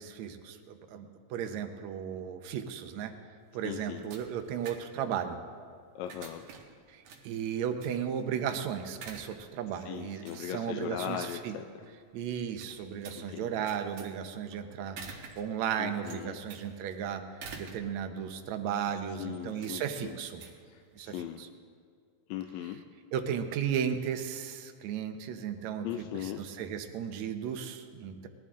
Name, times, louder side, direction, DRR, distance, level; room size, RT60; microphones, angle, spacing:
voice 1, 0.0-3.1 3.5-5.4 6.9-11.5 12.1-17.2 17.6-20.4 21.0-21.5 23.1-28.3, right 8 dB, 75° right, 7 dB, 2.1 m, -35 dB
sound 1, 3.4-21.4, right 5 dB, 90° right, 2.8 m, -51 dB
voice 2, 3.6-4.0 6.0-6.4 9.9-11.7 13.2-13.7 15.8-16.4 19.2-20.1 20.7-21.4 22.3-22.8 25.8-26.4, left 11 dB, 80° left, 5 dB, 1.8 m, -39 dB
20.0 x 12.5 x 3.7 m, 2.2 s
omnidirectional pair, 3.4 m